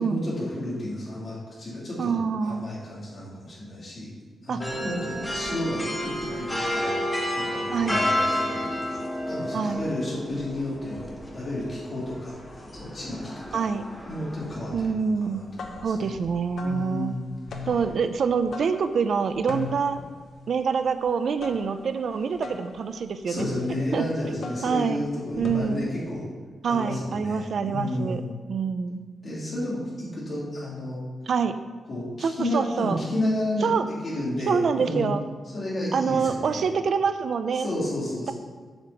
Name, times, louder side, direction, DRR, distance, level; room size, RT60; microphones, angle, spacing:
voice 1, 0.0-4.1 4.4-7.0 7.3-12.3 12.7-13.6 14.1-16.1 16.6-17.2 17.6-17.7 23.3-26.2 26.6-28.3 29.2-31.0 31.9-35.2 35.5-36.7 37.6-38.3, left 1 dB, 40° left, -6 dB, 3.0 m, -32 dB
voice 2, 2.0-2.6 4.5-4.6 7.7-8.0 9.5-9.9 13.5-13.9 14.7-15.4 15.8-17.1 17.7-20.0 20.5-23.5 23.9-25.0 25.4-25.8 26.6-28.2 28.5-29.0 31.3-31.6 32.2-33.0 33.6-33.9 34.5-35.2 35.9-37.7, right 6 dB, 60° right, 10 dB, 0.4 m, -26 dB
sound 1, 4.6-14.9, left 1 dB, 15° left, 1.4 m, -31 dB
sound 2, 15.3-26.1, left 4 dB, 70° left, 0.9 m, -40 dB
8.0 x 5.1 x 6.9 m, 1.5 s
wide cardioid pair, 140°, 0 cm